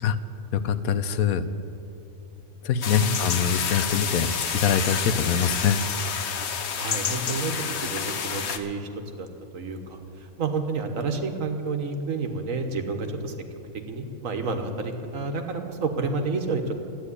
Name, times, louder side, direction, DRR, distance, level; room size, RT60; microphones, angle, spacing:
voice 1, 0.5-1.4 2.6-5.8, left 7 dB, 85° left, 11 dB, 1.2 m, -24 dB
sound 1, 2.8-8.6, left 7 dB, 55° left, 1.0 m, -29 dB
voice 2, 6.7-7.5 7.8-8.9 9.1-9.3 9.5-10.0 10.4-13.3 13.9-16.8, right 4 dB, 65° right, 6 dB, 1.5 m, -29 dB
13.0 x 9.0 x 9.8 m, 2.8 s
omnidirectional pair, 1.5 m